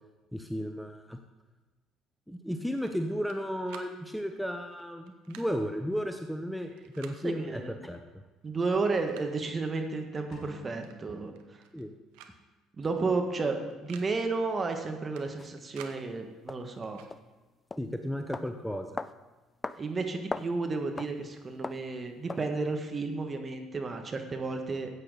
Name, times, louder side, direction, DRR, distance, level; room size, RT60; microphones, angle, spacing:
voice 1, 0.3-1.2 2.3-8.2 11.7-11.9 17.8-19.0, equal, ahead, 6 dB, 0.8 m, -34 dB
sound 1, 2.8-3.4 3.7-3.9 5.1-5.5 6.8-7.2 8.3-8.4 8.8-9.5 10.8-11.0 11.3-11.8 12.1-12.4 12.6-12.7 13.7-14.1 15.2-16.0 16.8-17.1, right 9 dB, 70° right, 0.8 m, -51 dB
voice 2, 7.2-7.8 8.4-11.3 12.8-17.0 19.8-24.9, right 3 dB, 30° right, 5 dB, 1.5 m, -32 dB
sound 2, 10.3-12.3, right 2 dB, 50° left, 2.5 m, -52 dB
sound 3, 15.4-15.5 16.5-16.6 17.1-17.3 17.7-17.9 18.3-18.5 19.0-19.2 19.6-19.8 20.1-20.5 21.0-21.1 21.6-21.9 22.3-22.5, left 3 dB, 25° left, 0.4 m, -37 dB
13.5 x 8.6 x 4.0 m, 1.2 s
hypercardioid pair, 55°, 0 cm